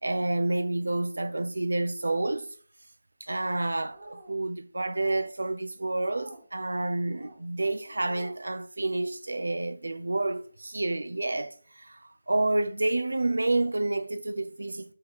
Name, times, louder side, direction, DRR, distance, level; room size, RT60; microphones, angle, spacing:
voice 1, 0.0-2.5 3.2-12.0 12.3-14.9, right 2 dB, 70° right, 0.6 m, -29 dB
sound 1, 3.8-4.4 4.9-5.3 5.9-6.4 7.0-7.4 7.9-8.4, right 1 dB, 45° right, 1.6 m, -47 dB
5.4 x 3.9 x 5.3 m
figure-of-eight pair, 155°, 0 cm